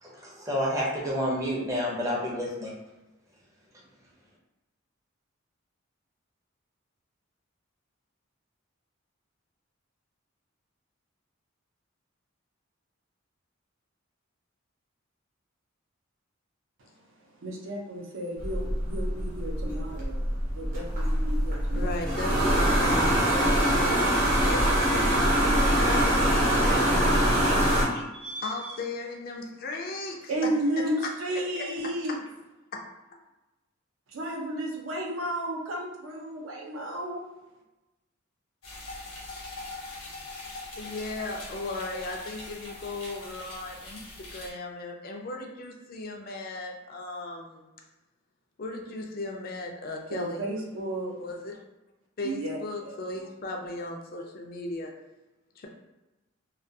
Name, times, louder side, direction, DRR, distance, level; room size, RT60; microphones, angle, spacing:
voice 1, 0.0-2.7, equal, 15° right, -4 dB, 0.5 m, -29 dB
voice 2, 17.4-20.2 20.5-22.0 27.4-28.8 30.3-32.2 34.1-37.2 50.1-51.1 52.2-52.6 52.9-53.0, right 1 dB, 70° right, -1 dB, 0.5 m, -33 dB
sound 1, 18.4-27.8, right 1 dB, 40° right, 0.9 m, -24 dB
voice 3, 21.7-27.2 28.4-30.3 31.3-32.0 32.7-33.2 40.8-44.0 44.3-47.7 48.6-50.4 51.2-51.6 52.2-54.9 55.6-55.7, left 2 dB, 45° left, 1 dB, 0.4 m, -36 dB
sound 2, 38.6-44.5, left 2 dB, 80° left, 0.9 m, -42 dB
2.3 x 2.2 x 2.6 m, 1.0 s
head